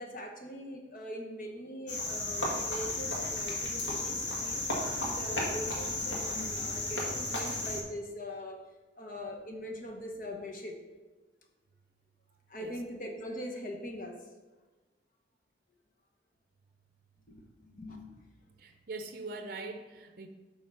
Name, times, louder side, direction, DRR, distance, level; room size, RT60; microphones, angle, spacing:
voice 1, 0.0-4.6 4.9-8.6 9.0-10.7 12.5-14.2 17.3-18.3, equal, 50° left, 2 dB, 1.0 m, -42 dB
Cricket, 1.9-7.8, left 2 dB, 90° left, 1.5 m, -34 dB
voice 2, 18.6-20.3, right 3 dB, 50° right, 6 dB, 0.6 m, -42 dB
7.8 x 3.6 x 5.6 m, 1.2 s
head